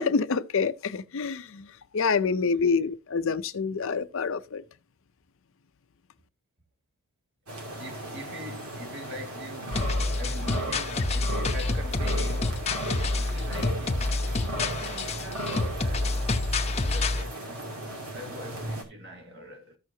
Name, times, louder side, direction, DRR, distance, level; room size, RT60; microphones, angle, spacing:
voice 1, 0.0-1.7 1.9-4.6, left 5 dB, 60° left, 0.6 m, -27 dB
voice 2, 2.3-2.6 7.8-14.2 14.5-16.3 16.8-17.7 18.1-19.8, equal, 55° right, 2.3 m, -44 dB
sound 1, 7.5-18.8, right 1 dB, 80° right, 2.8 m, -36 dB
sound 2, 9.7-17.2, left 2 dB, 30° left, 0.7 m, -28 dB
14.0 x 6.4 x 2.8 m
head